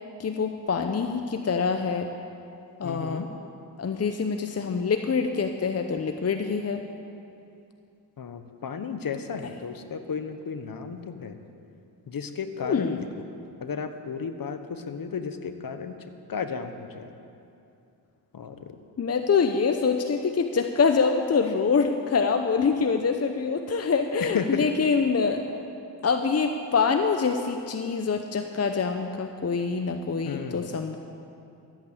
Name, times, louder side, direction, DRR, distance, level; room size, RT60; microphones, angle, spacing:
voice 1, 0.2-2.1 2.8-3.2 3.8-6.8 12.6-13.0 19.0-25.4 26.0-31.0, left 5 dB, 35° left, 6 dB, 0.8 m, -25 dB
voice 2, 2.8-3.3 8.2-11.4 12.1-13.0 13.6-17.1 18.3-18.8 24.2-24.7 30.3-30.8, left 6 dB, 50° left, 9 dB, 1.2 m, -33 dB
13.5 x 8.9 x 8.0 m, 2.7 s
cardioid pair, 60°, 43 cm